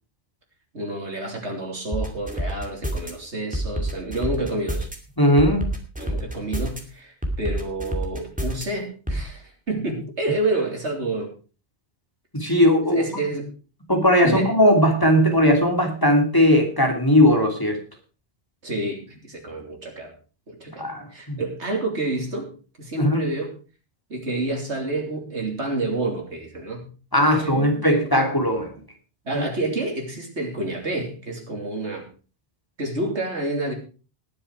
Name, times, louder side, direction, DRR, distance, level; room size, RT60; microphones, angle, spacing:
voice 1, 0.7-4.9 6.0-11.3 12.9-13.5 14.2-14.5 18.6-20.1 20.5-22.5 22.8-23.5 24.1-26.9 27.2-28.1 29.3-32.1 32.8-33.7, right 2 dB, 75° right, 2 dB, 3.5 m, -29 dB
sound 1, 1.9-3.1 3.5-5.0 5.4-6.8 7.2-8.6 9.1-9.2, right 1 dB, 5° right, 2.5 m, -27 dB
voice 2, 5.2-5.7 12.3-13.0 13.9-17.8 20.8-21.4 23.0-23.3 27.1-28.7 29.3-29.4, equal, 20° left, 2 dB, 2.9 m, -18 dB
19.5 x 7.3 x 4.8 m, 0.35 s
omnidirectional pair, 1.2 m